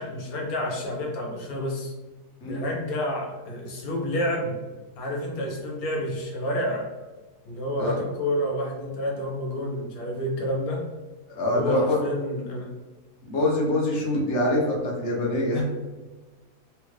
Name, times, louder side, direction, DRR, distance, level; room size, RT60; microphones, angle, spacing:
voice 1, 0.0-1.9 2.4-4.6 5.0-6.9 7.4-10.9 11.5-12.7, equal, 70° left, -1 dB, 1.2 m, -29 dB
voice 2, 11.3-12.0 13.2-15.6, left 1 dB, 55° left, -2 dB, 1.0 m, -24 dB
3.6 x 2.4 x 3.1 m, 1.2 s
omnidirectional pair, 1.7 m